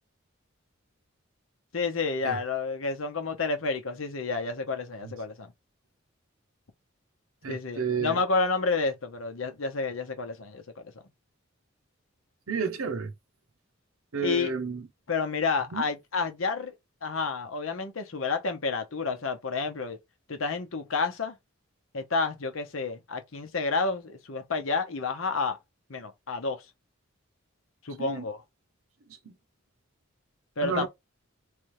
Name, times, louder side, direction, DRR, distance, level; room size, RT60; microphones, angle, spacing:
voice 1, 1.7-5.5 7.5-10.8 14.2-14.5 15.1-16.7 17.0-20.0 20.3-21.3 21.9-25.6 25.9-26.6 27.8-28.4 30.6-30.9, left 4 dB, 75° left, 0.9 m, -30 dB
voice 2, 7.4-8.2 12.5-13.1 14.1-14.8 15.7-15.8 28.0-28.2 29.2-29.4 30.6-30.9, right 5 dB, 90° right, 0.7 m, -31 dB
3.5 x 3.2 x 3.1 m
head